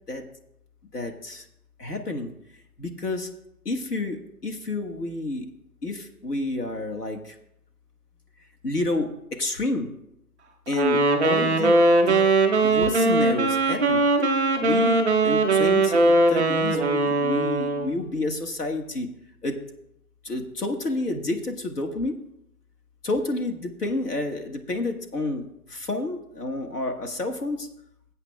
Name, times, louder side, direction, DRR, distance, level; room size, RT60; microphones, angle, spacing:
voice 1, 0.9-1.4 1.8-2.3 2.8-3.3 3.6-5.5 5.8-7.3 8.6-9.9 10.7-12.3 12.6-14.0 14.6-19.1 19.4-19.6 20.2-22.2 23.0-27.7, left 2 dB, 80° left, 5 dB, 1.6 m, -30 dB
Wind instrument woodwind instrument, 10.7-17.9, right 2 dB, ahead, 0.7 m, -20 dB
17.5 x 8.0 x 2.3 m, 0.78 s
figure-of-eight pair, 150°, 46 cm